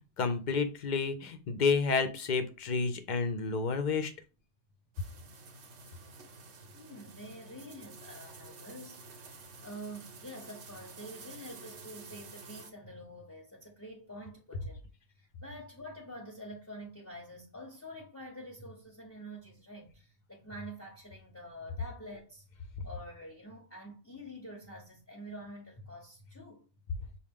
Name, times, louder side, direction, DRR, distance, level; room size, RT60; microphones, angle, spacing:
voice 1, 0.0-4.1, left 4 dB, 55° left, 0.6 m, -30 dB
sound 1, 4.9-12.7, right 4 dB, 85° right, 1.1 m, -51 dB
voice 2, 6.6-14.8 15.2-22.4 22.8-26.7, equal, 15° left, 0.7 m, -47 dB
5.9 x 2.3 x 3.5 m
omnidirectional pair, 1.1 m